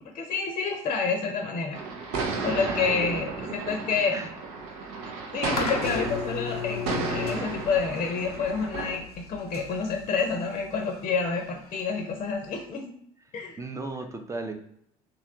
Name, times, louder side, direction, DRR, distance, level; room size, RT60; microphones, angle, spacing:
voice 1, 0.1-1.8 2.4-4.2 5.3-12.9 13.3-13.6, left 5 dB, 35° left, 3 dB, 0.6 m, -28 dB
sound 1, 1.7-9.0, right 4 dB, 65° right, 0.6 m, -33 dB
voice 2, 2.5-3.8 4.1-4.3 13.3-14.5, right 3 dB, 15° right, 5 dB, 0.6 m, -37 dB
sound 2, 5.5-12.6, left 6 dB, 90° left, 0.5 m, -36 dB
3.2 x 2.9 x 3.6 m, 0.70 s
figure-of-eight pair, 60°, 19 cm